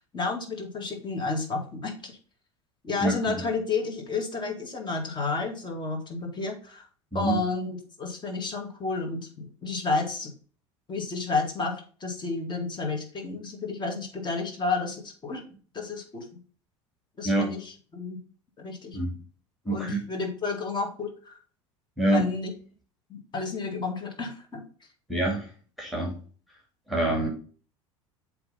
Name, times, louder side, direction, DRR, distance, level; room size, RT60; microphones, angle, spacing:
voice 1, 0.1-2.1 2.8-6.8 7.1-10.3 10.9-15.4 15.7-16.4 17.2-18.2 18.6-19.0 19.7-21.4 22.1-22.5 23.1-24.6, left 3 dB, 30° left, 3 dB, 2.3 m, -31 dB
voice 2, 3.0-3.4 7.1-7.4 17.2-17.5 18.9-19.1 19.7-20.0 22.0-22.3 25.1-25.5 25.8-26.1 26.9-27.3, right 2 dB, ahead, -1 dB, 2.4 m, -26 dB
7.8 x 3.6 x 5.4 m, 0.41 s
figure-of-eight pair, 70°, 16 cm